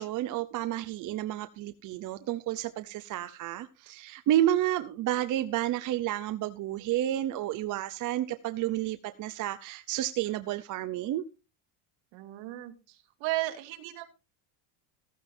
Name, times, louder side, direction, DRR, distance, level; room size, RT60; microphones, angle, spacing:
voice 1, 0.0-11.2, right 13 dB, 40° right, 10 dB, 0.7 m, -30 dB
voice 2, 12.1-13.0 13.2-14.1, right 17 dB, 60° right, 6 dB, 2.4 m, -34 dB
15.0 x 14.5 x 2.7 m, 0.29 s
cardioid pair, 140°, 50 cm